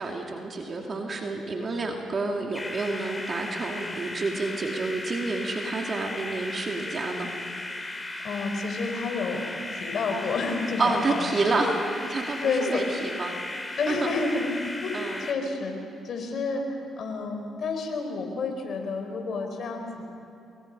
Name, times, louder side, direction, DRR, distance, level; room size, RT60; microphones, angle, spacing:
voice 1, 0.0-7.3 10.8-11.8 12.0-13.4 13.9-14.1 14.9-15.2, right 3 dB, 45° right, 1 dB, 2.6 m, -29 dB
sound 1, 2.5-15.4, left 2 dB, 20° left, 2.7 m, -36 dB
voice 2, 8.2-9.5 9.8-11.6 12.4-12.8 13.8-14.5 14.8-15.7 16.0-20.0, left 4 dB, 60° left, 4 dB, 4.4 m, -30 dB
27.0 x 23.0 x 5.5 m, 2.8 s
supercardioid pair, 55°, 0 cm